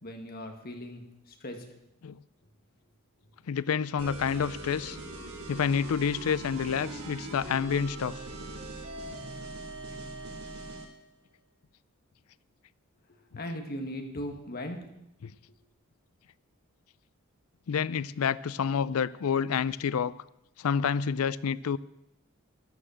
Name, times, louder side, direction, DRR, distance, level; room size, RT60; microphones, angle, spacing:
voice 1, 0.0-1.7 13.1-14.8, left 1 dB, 45° left, 4 dB, 2.1 m, -39 dB
voice 2, 3.5-5.0 5.5-8.2 15.2-15.3 17.7-20.1 20.6-21.8, left 7 dB, 80° left, 19 dB, 0.4 m, -28 dB
sound 1, 4.0-10.9, right 2 dB, 90° right, 2.9 m, -41 dB
13.0 x 11.5 x 7.4 m, 0.83 s
head